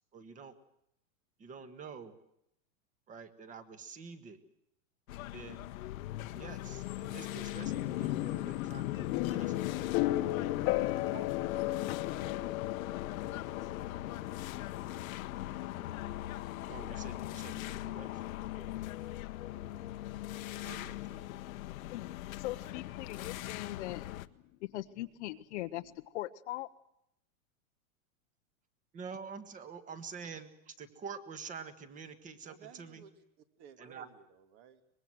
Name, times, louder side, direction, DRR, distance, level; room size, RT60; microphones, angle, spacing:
voice 1, 0.1-0.5 1.4-2.1 3.1-4.4 5.3-5.7 6.3-9.6 10.9-11.3 16.7-18.2 20.6-21.3 28.9-33.0 33.8-34.1, right 5 dB, 20° right, 1.6 m, -47 dB
sound 1, 5.1-24.3, left 15 dB, 75° left, 1.1 m, -40 dB
sound 2, 7.7-21.4, left 16 dB, 35° left, 1.2 m, -37 dB
voice 2, 10.1-10.8 18.5-18.8 32.5-33.2 33.6-34.8, right 7 dB, 45° right, 2.4 m, -56 dB
voice 3, 22.4-24.0 24.7-26.7, left 16 dB, 55° left, 0.9 m, -40 dB
24.5 x 21.5 x 7.8 m
supercardioid pair, 165°, 42 cm